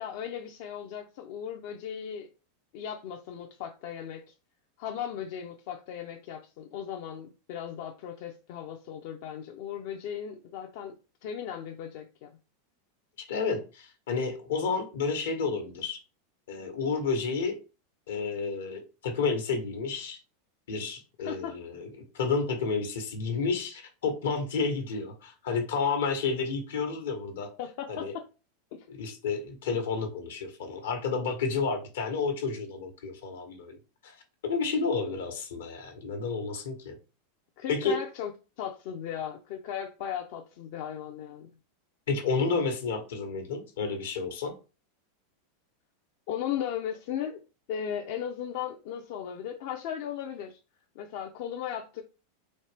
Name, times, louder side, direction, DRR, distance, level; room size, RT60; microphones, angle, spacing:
voice 1, 0.0-2.3 2.7-4.3 4.8-10.9 11.2-12.3 21.2-21.6 27.6-28.2 28.7-28.9 37.6-38.3 38.6-41.5 46.3-47.4 47.7-50.6 51.0-52.0, left 9 dB, 60° left, 0.5 m, -37 dB
voice 2, 13.3-16.0 16.5-17.6 18.1-20.2 20.7-21.9 22.1-27.5 27.9-28.1 28.9-33.8 34.0-34.1 34.4-36.9 37.7-38.0 42.1-44.5, left 4 dB, 80° left, 1.2 m, -30 dB
4.2 x 2.9 x 3.3 m
hypercardioid pair, 110°, 0 cm